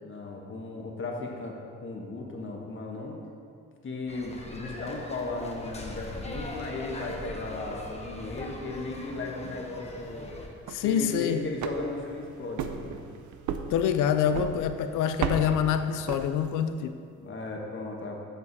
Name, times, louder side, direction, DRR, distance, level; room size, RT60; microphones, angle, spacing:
voice 1, 0.0-3.2 3.8-10.3 10.8-13.0 17.1-18.2, left 2 dB, 40° left, 0 dB, 1.4 m, -36 dB
sound 1, 4.1-10.5, left 2 dB, 20° left, 1.1 m, -40 dB
sound 2, 10.5-16.8, right 7 dB, 75° right, 0.6 m, -36 dB
voice 2, 10.7-11.5 13.7-17.0, left 8 dB, 85° left, 9 dB, 0.5 m, -26 dB
7.7 x 7.1 x 4.1 m, 2.3 s
cardioid pair, 90°, 30 cm